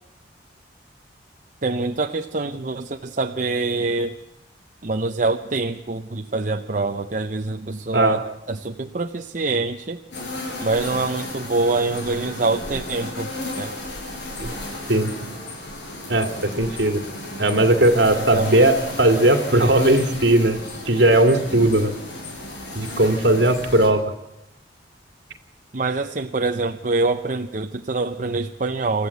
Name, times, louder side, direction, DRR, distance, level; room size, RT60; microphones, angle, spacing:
voice 1, 1.6-4.1 4.8-10.0 10.6-13.3 13.6-13.7 18.1-18.6 25.7-29.1, right 3 dB, 45° right, 5 dB, 0.8 m, -25 dB
sound 1, 10.1-23.9, left 1 dB, 70° left, 7.5 m, -33 dB
voice 2, 14.9-15.3 16.1-17.0 17.4-20.6 20.9-21.9 22.7-24.0, right 1 dB, 65° right, 7 dB, 2.3 m, -18 dB
28.0 x 14.5 x 8.3 m, 0.91 s
head